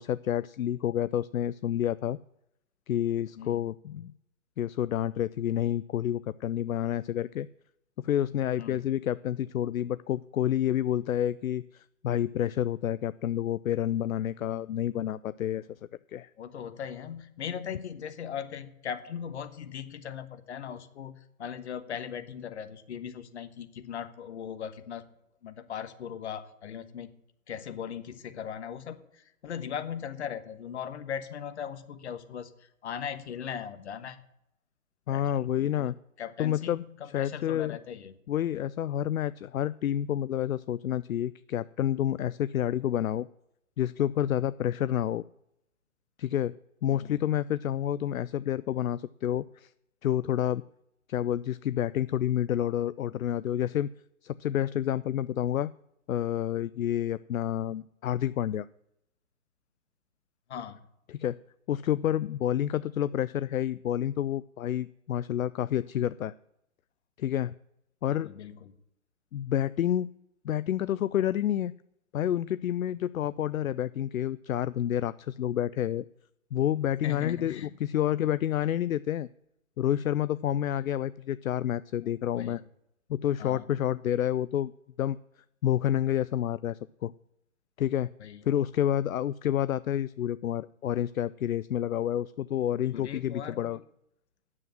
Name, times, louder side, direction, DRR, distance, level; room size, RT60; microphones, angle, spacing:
voice 1, 0.0-2.2 2.9-4.1 4.6-7.5 8.0-15.8 16.1-16.3 35.1-35.9 36.4-36.8 37.1-37.8 38.3-43.3 43.8-45.2 46.2-46.5 46.8-49.7 50.0-50.6 51.1-53.9 54.2-55.7 56.1-58.7 61.1-61.4 61.7-66.3 67.2-67.5 68.0-68.3 69.3-70.1 70.4-71.7 72.1-76.0 76.5-79.3 79.8-82.6 83.1-84.7 85.0-85.2 85.6-87.1 87.8-88.1 88.4-93.8, left 11 dB, 70° left, 17 dB, 0.5 m, -29 dB
voice 2, 16.4-25.0 25.4-27.1 27.5-34.2 35.1-35.9 36.2-38.1 46.9-47.2 60.5-60.8 68.1-68.8 77.0-77.7 82.3-82.6 83.4-83.7 88.2-88.4 92.9-93.8, left 8 dB, 50° left, 11 dB, 1.3 m, -39 dB
9.8 x 7.7 x 7.5 m, 0.80 s
figure-of-eight pair, 135°, 42 cm